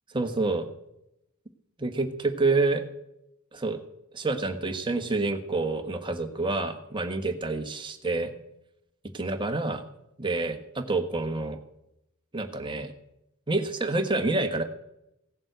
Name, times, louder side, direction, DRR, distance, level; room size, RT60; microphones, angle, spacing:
voice 1, 0.1-0.7 1.8-2.8 3.5-3.8 4.1-8.3 9.1-9.8 10.2-11.6 12.3-12.9 13.5-14.6, right 3 dB, 25° right, 5 dB, 1.4 m, -28 dB
16.5 x 7.4 x 7.9 m, 0.86 s
head